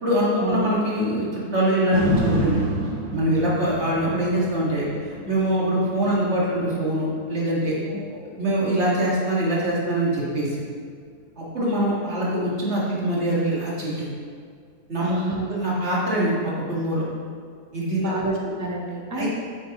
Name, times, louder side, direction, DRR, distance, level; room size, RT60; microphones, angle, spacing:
voice 1, 0.0-2.7 3.1-7.8 8.2-10.6 11.4-14.1 14.9-15.1 15.5-17.1 17.7-18.1 18.4-18.5 19.1-19.3, right 1 dB, 45° right, -6 dB, 2.2 m, -24 dB
sound 1, 1.9-10.1 10.6-10.7, equal, 75° right, 2.1 m, -30 dB
voice 2, 15.0-15.5 17.9-19.3, right 3 dB, 20° right, -1 dB, 0.4 m, -28 dB
9.0 x 8.3 x 3.0 m, 2.1 s
omnidirectional pair, 1.7 m